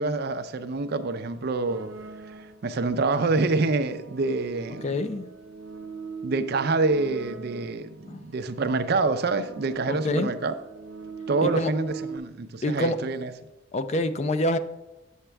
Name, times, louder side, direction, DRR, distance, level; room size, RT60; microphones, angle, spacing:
voice 1, 0.0-1.9 2.3-4.9 6.2-10.6 11.3-13.3, right 3 dB, 55° right, 0.5 m, -26 dB
sound 1, 1.7-2.8 3.5-8.0 8.8-12.2, right 4 dB, 90° right, 0.8 m, -41 dB
voice 2, 4.8-5.3 8.1-8.2 9.9-10.3 11.4-11.7 12.6-13.0 13.7-14.6, left 1 dB, 35° left, 0.4 m, -26 dB
8.8 x 7.3 x 3.4 m
head